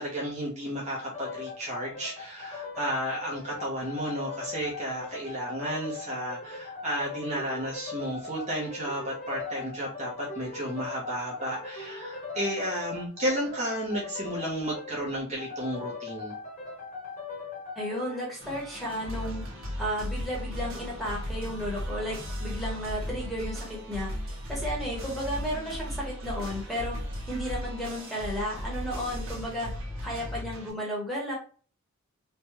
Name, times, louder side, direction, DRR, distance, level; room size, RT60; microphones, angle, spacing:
voice 1, 0.0-16.3, right 1 dB, 35° right, -4 dB, 0.8 m, -33 dB
sound 1, 0.9-18.4, left 4 dB, 35° left, 1.0 m, -40 dB
voice 2, 17.8-19.4 19.8-27.0 27.3-29.7 30.0-31.3, equal, ahead, -4 dB, 1.1 m, -33 dB
sound 2, 18.4-30.7, equal, 70° right, 1.0 m, -36 dB
3.3 x 2.2 x 2.9 m, 0.40 s
head